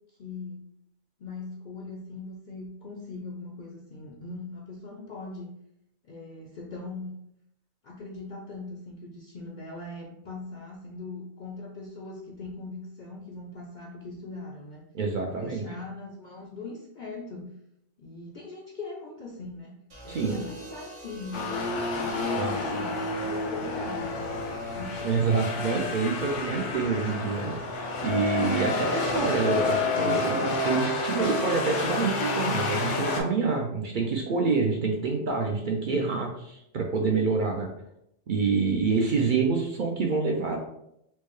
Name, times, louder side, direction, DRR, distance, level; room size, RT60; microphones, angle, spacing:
voice 1, 0.1-0.6 1.2-5.5 6.0-7.1 7.8-14.9 15.3-17.5 18.0-19.7 20.0-21.6 22.0-24.9 35.8-36.1, left 3 dB, 60° left, 0 dB, 0.5 m, -40 dB
voice 2, 14.9-15.6 20.1-20.4 22.4-22.6 25.0-37.7 38.3-40.6, right 4 dB, 60° right, 1 dB, 0.6 m, -27 dB
sound 1, 19.9-28.1 29.3-29.7, equal, 75° right, 1.5 m, -49 dB
sound 2, 21.3-33.2, left 3 dB, 90° left, 1.0 m, -29 dB
4.5 x 2.2 x 3.0 m, 0.78 s
omnidirectional pair, 1.2 m